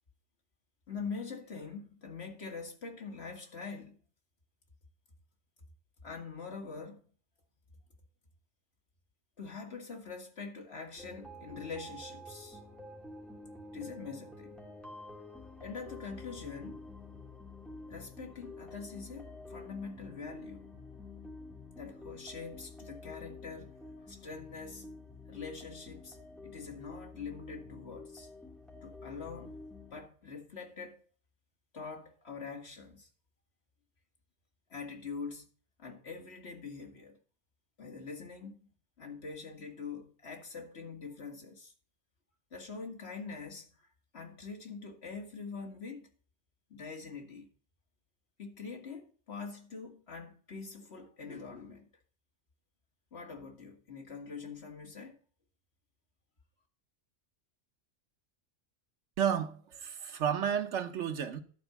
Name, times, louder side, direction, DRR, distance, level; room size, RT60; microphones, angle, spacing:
voice 1, 0.9-4.0 6.0-7.0 9.4-12.6 13.7-14.6 15.6-16.9 17.9-20.7 21.8-23.8 24.0-24.9 25.3-26.2 26.4-28.3 28.8-29.6 29.9-31.0 31.7-33.1 34.7-35.5 35.8-37.2 37.8-38.7 39.0-41.7 42.5-43.9 44.1-46.1 46.7-47.5 48.4-51.9 53.1-55.2, left 5 dB, 60° left, 2.1 m, -44 dB
sound 1, 11.0-30.0, left 2 dB, ahead, 2.3 m, -49 dB
voice 2, 59.2-61.4, right 8 dB, 75° right, 1.3 m, -32 dB
11.5 x 4.4 x 7.0 m
omnidirectional pair, 1.2 m